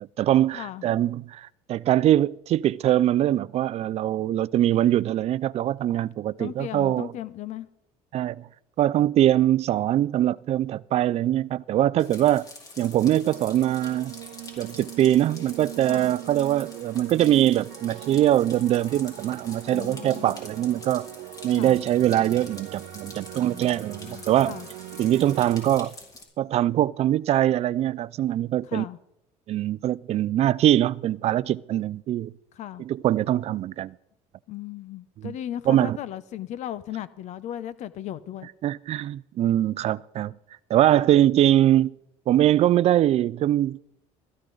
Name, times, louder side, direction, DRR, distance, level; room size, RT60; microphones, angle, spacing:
voice 1, 0.0-7.1 8.1-8.5 8.8-12.5 12.8-14.1 14.6-21.1 21.4-24.5 25.0-25.9 26.4-28.8 29.5-32.3 32.8-33.9 35.2-35.3 35.7-36.0 38.6-40.3 40.7-42.0 42.3-43.8, right 12 dB, 50° right, 0.5 m, -22 dB
voice 2, 0.5-0.8 6.4-7.7 15.9-16.1 19.7-20.4 21.6-21.8 23.3-24.7 28.7-29.0 32.6-32.8 34.5-38.5 40.9-41.0, left 11 dB, 60° left, 0.8 m, -37 dB
sound 1, 12.0-26.2, left 2 dB, 25° left, 4.5 m, -46 dB
sound 2, 13.3-25.8, right 16 dB, 85° right, 0.8 m, -41 dB
16.5 x 14.0 x 3.9 m
cardioid pair, 110°, 14 cm